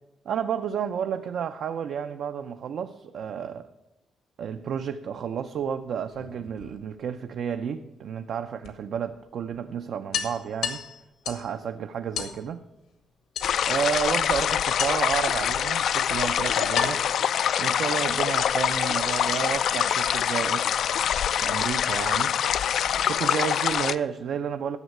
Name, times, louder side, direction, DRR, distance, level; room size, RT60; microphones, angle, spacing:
voice 1, 0.3-3.7 4.4-10.8 11.3-12.6 13.6-17.0 17.6-20.7 21.4-22.3 23.1-24.8, right 8 dB, 60° right, 7 dB, 0.5 m, -31 dB
sound 1, 6.0-7.2 8.6-8.7 9.1-9.2 9.5-9.6 10.1-11.5 12.1-12.4 13.3-13.9 14.8-15.2 16.0-16.1 16.7-18.1, left 7 dB, 85° left, 1.8 m, -33 dB
sound 2, 13.4-24.0, left 9 dB, 60° left, 0.3 m, -25 dB
11.0 x 7.2 x 7.9 m, 0.96 s
cardioid pair, 165°, 0 cm